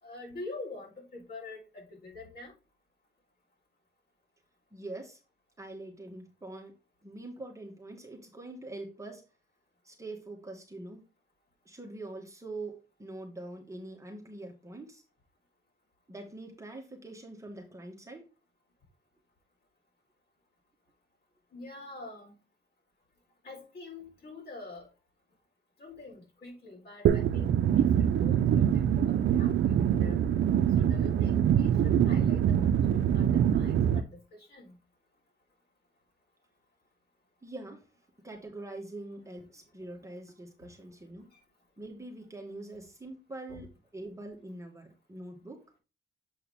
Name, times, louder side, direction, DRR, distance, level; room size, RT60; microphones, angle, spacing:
voice 1, 0.0-2.5 21.5-22.3 23.4-24.9 25.8-30.2 30.7-34.8 41.3-41.4 43.5-43.6, left 2 dB, 50° left, -1 dB, 4.3 m, -46 dB
voice 2, 4.7-5.2 5.6-6.8 7.0-9.2 9.8-11.1 11.7-15.0 16.1-18.3 37.4-37.9 38.2-41.3 41.8-43.7 43.9-45.6, right 2 dB, 15° right, 1 dB, 1.7 m, -44 dB
sound 1, 27.1-34.0, right 9 dB, 65° right, 0.7 m, -24 dB
7.6 x 4.5 x 3.6 m, 0.30 s
cardioid pair, 90°, 20 cm